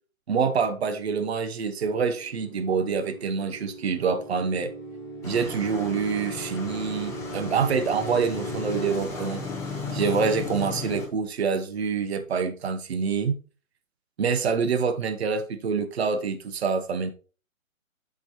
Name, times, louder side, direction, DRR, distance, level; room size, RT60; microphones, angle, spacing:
voice 1, 0.3-4.7 5.2-9.4 9.9-13.4 14.2-17.1, right 5 dB, 50° right, 8 dB, 1.0 m, -26 dB
sound 1, 1.6-9.0, right 1 dB, 10° right, 4.4 m, -39 dB
sound 2, 5.2-11.1, left 4 dB, 5° left, 1.1 m, -35 dB
8.4 x 6.3 x 3.0 m, 0.37 s
figure-of-eight pair, 135°, 41 cm